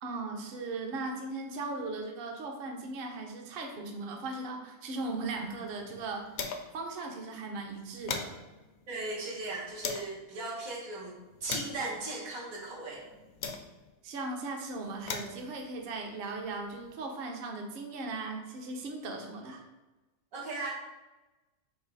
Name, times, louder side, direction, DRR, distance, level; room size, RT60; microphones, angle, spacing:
voice 1, 0.0-6.3 6.7-8.4 14.0-19.6, right 3 dB, 55° right, 3 dB, 0.7 m, -38 dB
sound 1, 5.1-6.9 7.2-7.3 7.6-10.2 10.8-14.0 14.7-16.9, left 5 dB, 65° left, 0.7 m, -42 dB
voice 2, 8.9-13.0 20.3-20.7, right 2 dB, 80° right, -4 dB, 1.5 m, -37 dB
3.9 x 2.8 x 3.9 m, 1.1 s
omnidirectional pair, 1.5 m